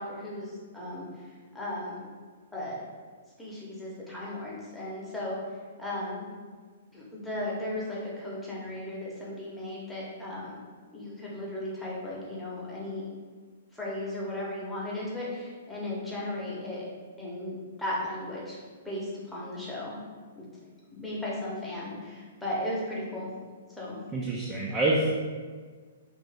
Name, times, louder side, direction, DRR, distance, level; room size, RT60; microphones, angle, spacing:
voice 1, 0.0-2.1 2.5-2.8 3.4-5.4 5.8-6.3 6.9-10.5 10.9-13.0 13.7-16.9 17.2-18.6 18.8-20.0 20.4-20.5 20.9-23.3 23.7-24.0, left 1 dB, 5° left, -7 dB, 0.9 m, -36 dB
voice 2, 24.1-25.1, right 2 dB, 15° right, -6 dB, 0.4 m, -26 dB
2.8 x 2.6 x 3.3 m, 1.5 s
hypercardioid pair, 140°, 0 cm